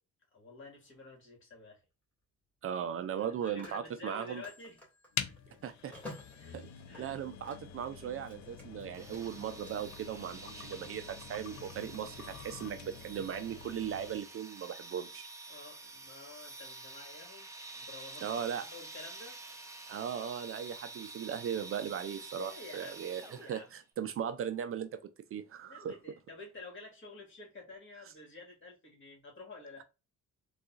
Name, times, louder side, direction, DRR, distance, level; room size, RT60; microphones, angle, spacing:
voice 1, 0.3-1.8 3.2-4.8 5.5-5.6 6.4-6.6 6.9-7.2 15.5-17.5 17.7-19.4 22.3-23.7 25.6-29.8, left 3 dB, 40° left, 1.7 m, -50 dB
Telephone, 0.8-1.1 3.0-7.9 8.2-9.7, left 2 dB, 5° left, 1.9 m, -53 dB
voice 2, 2.6-4.4 5.6-5.9 6.5-6.7 7.0-15.3 18.2-18.6 19.9-26.0, right 8 dB, 45° right, 0.4 m, -38 dB
sound 1, 5.1-14.3, left 8 dB, 65° left, 0.5 m, -46 dB
sound 2, 8.9-23.7, right 3 dB, 10° right, 0.7 m, -49 dB
3.8 x 2.4 x 2.4 m
cardioid pair, 90°, 30 cm